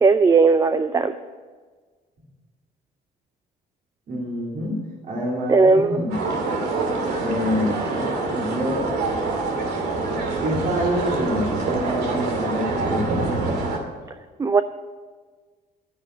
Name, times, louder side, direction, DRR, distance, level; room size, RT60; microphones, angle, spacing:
voice 1, 0.0-1.2 5.5-6.0 14.4-14.6, right 4 dB, 20° right, 11 dB, 0.5 m, -17 dB
voice 2, 4.1-6.2 7.2-8.9 10.4-13.3, equal, 50° right, -4 dB, 3.1 m, -27 dB
sound 1, 6.1-13.8, right 3 dB, 75° right, 2.5 m, -25 dB
10.5 x 9.7 x 7.5 m, 1.5 s
cardioid pair, 110°, 17 cm